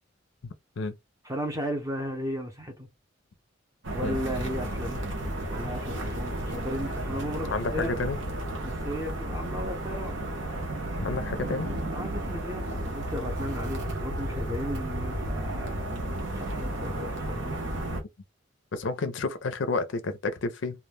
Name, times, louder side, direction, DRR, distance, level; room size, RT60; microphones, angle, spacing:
voice 1, 0.4-0.9 4.0-4.2 7.5-8.2 11.0-11.8 18.7-20.8, left 3 dB, 65° left, 0.4 m, -30 dB
voice 2, 1.2-2.9 3.9-5.0 5.5-7.9 8.6-10.2 11.9-17.6, equal, 15° right, 0.6 m, -35 dB
sound 1, 3.8-18.0, right 1 dB, 65° right, 0.7 m, -33 dB
2.2 x 2.1 x 3.2 m
head